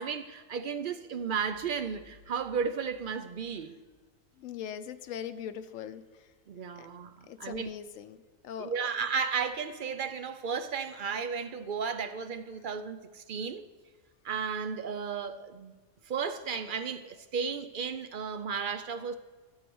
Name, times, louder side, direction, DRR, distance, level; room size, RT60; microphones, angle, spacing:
voice 1, 0.0-3.8 6.5-7.7 8.6-13.7 14.2-19.1, right 6 dB, 55° right, 0.6 m, -34 dB
sound 1, 1.2-4.0, right 3 dB, 35° right, 3.0 m, -61 dB
voice 2, 4.4-6.0 6.8-6.9 7.3-8.2 8.4-8.7, left 9 dB, 90° left, 1.0 m, -40 dB
12.5 x 4.8 x 7.8 m
omnidirectional pair, 1.3 m